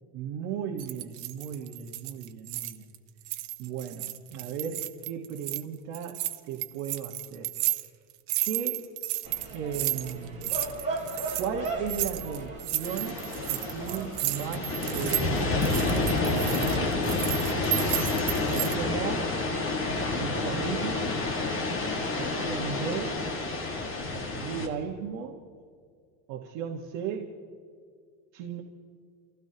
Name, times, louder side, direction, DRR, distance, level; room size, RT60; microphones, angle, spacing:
voice 1, 0.1-2.8 3.6-7.5 8.4-8.9 9.5-10.5 11.4-13.2 13.5-17.0 18.5-19.3 20.2-21.2 22.1-23.2 24.3-25.4 26.3-27.3 28.3-28.6, right 7 dB, 55° right, 1 dB, 1.6 m, -36 dB
sound 1, 0.8-3.0 3.2-5.6 5.9-18.7, right 17 dB, 75° right, 1.0 m, -33 dB
sound 2, 9.2-17.6, right 2 dB, 15° right, 4.0 m, -39 dB
sound 3, 12.8-24.7, left 3 dB, 25° left, 2.0 m, -29 dB
30.0 x 16.0 x 2.9 m, 2.1 s
cardioid pair, 160°, 46 cm